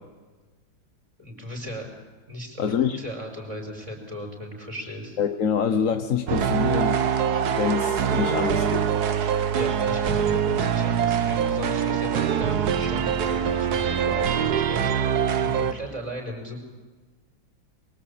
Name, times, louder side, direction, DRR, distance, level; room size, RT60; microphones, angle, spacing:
voice 1, 1.2-1.9 2.3-5.2 9.5-16.6, equal, 10° right, 1 dB, 5.5 m, -36 dB
voice 2, 2.6-3.0 5.2-7.0 7.5-9.0, left 7 dB, 50° left, 8 dB, 1.2 m, -25 dB
sound 1, 6.3-15.7, right 8 dB, 55° right, 1.5 m, -24 dB
24.0 x 23.5 x 8.7 m, 1.3 s
omnidirectional pair, 2.2 m